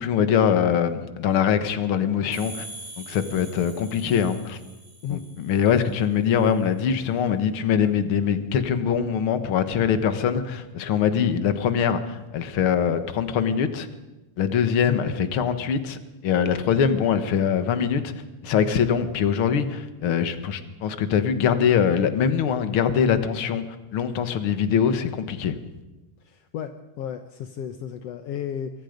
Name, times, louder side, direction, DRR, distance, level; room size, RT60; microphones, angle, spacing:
voice 1, 0.0-2.7 3.0-4.6 5.1-13.9 14.4-16.0 16.2-18.1 18.4-23.6 23.9-25.5, left 7 dB, 50° left, 10 dB, 1.7 m, -23 dB
sound 1, 2.3-5.9, right 1 dB, 25° right, 4.5 m, -43 dB
voice 2, 26.2-28.7, left 9 dB, 70° left, 8 dB, 1.5 m, -33 dB
26.0 x 23.0 x 5.3 m, 1.1 s
omnidirectional pair, 3.9 m